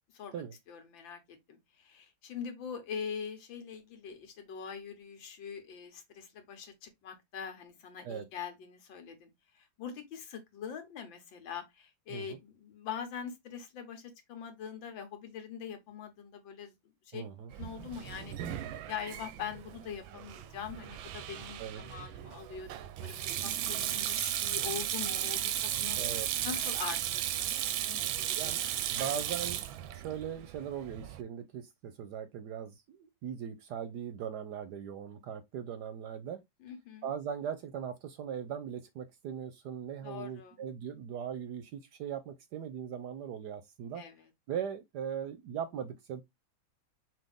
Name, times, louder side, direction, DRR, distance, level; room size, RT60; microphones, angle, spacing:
voice 1, 0.1-9.3 9.6-16.7 17.1-17.2 17.5-26.0 26.4-28.5 29.0-29.1 36.6-37.1 40.0-40.6 44.0-44.3, left 7 dB, 75° left, 1.8 m, -43 dB
voice 2, 17.1-17.5 21.6-21.8 25.9-26.3 28.4-28.6 28.9-29.7 29.9-36.4 37.0-44.0 44.5-46.2, right 8 dB, 70° right, 1.0 m, -39 dB
Sink (filling or washing), 17.5-31.2, right 11 dB, 85° right, 1.4 m, -35 dB
6.0 x 2.5 x 3.5 m
omnidirectional pair, 2.1 m